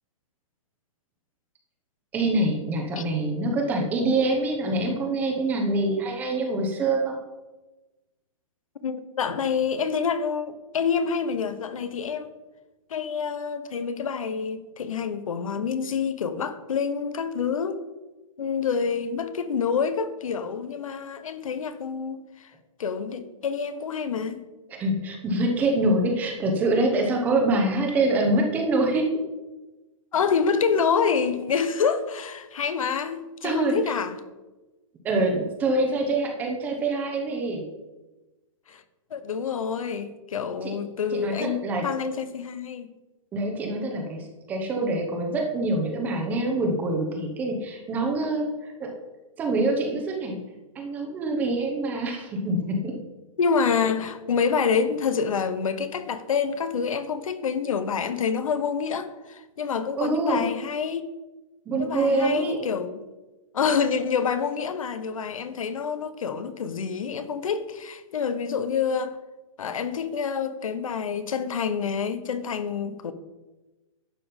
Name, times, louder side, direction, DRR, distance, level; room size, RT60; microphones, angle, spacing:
voice 1, 2.1-7.2 24.8-29.1 33.4-33.7 35.0-37.6 41.1-41.8 43.3-44.2 44.5-48.4 48.8-48.9 49.4-50.4 50.7-52.9 60.0-60.4 61.7-62.6, right 2 dB, 10° right, 1.0 m, -25 dB
voice 2, 8.8-12.3 12.9-17.9 18.4-22.5 22.8-24.4 30.1-34.2 38.7-38.8 39.1-42.9 53.4-61.0 61.8-63.0 63.5-69.2 69.6-73.1, left 6 dB, 75° left, 1.1 m, -27 dB
11.5 x 7.4 x 5.3 m
hypercardioid pair, 180°, 18 cm